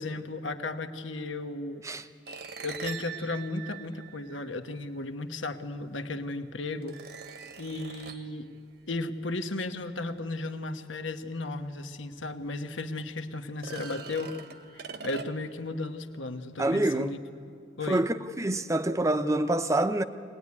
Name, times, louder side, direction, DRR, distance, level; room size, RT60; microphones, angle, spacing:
voice 1, 0.0-1.8 2.6-7.0 7.6-8.5 8.9-14.3 14.7-17.2 17.8-18.0, left 2 dB, 90° left, 1.3 m, -35 dB
sound 1, 2.3-4.7 5.9-6.0 6.8-8.4 11.7-11.8 12.2-12.3 13.5-15.6, right 5 dB, 55° right, 1.1 m, -42 dB
voice 2, 16.6-17.1 17.9-20.0, right 1 dB, 15° right, 0.7 m, -26 dB
24.0 x 19.0 x 9.7 m
head